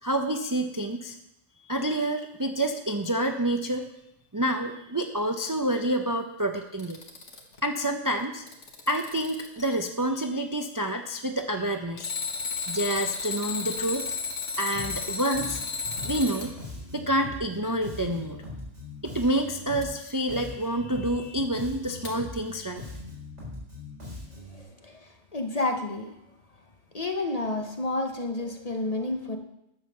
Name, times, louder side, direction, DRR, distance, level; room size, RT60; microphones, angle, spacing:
voice 1, 0.0-1.2 1.7-3.9 4.3-7.0 7.6-8.4 8.9-12.2 12.7-14.0 14.6-15.6 16.0-16.5 16.9-18.4 19.0-22.8, right 1 dB, 25° right, 5 dB, 0.5 m, -28 dB
Alarm, 6.6-7.6 8.2-9.6 12.0-16.5 19.8-19.9 22.0-22.1, left 4 dB, 70° left, 2.0 m, -33 dB
Bass guitar, 14.7-15.1 15.3-20.0 20.3-24.6, left 2 dB, 65° right, 4.7 m, -41 dB
voice 2, 24.4-26.2 26.9-29.4, left 2 dB, 35° left, 5 dB, 0.9 m, -30 dB
11.0 x 7.3 x 6.6 m, 0.85 s
omnidirectional pair, 1.3 m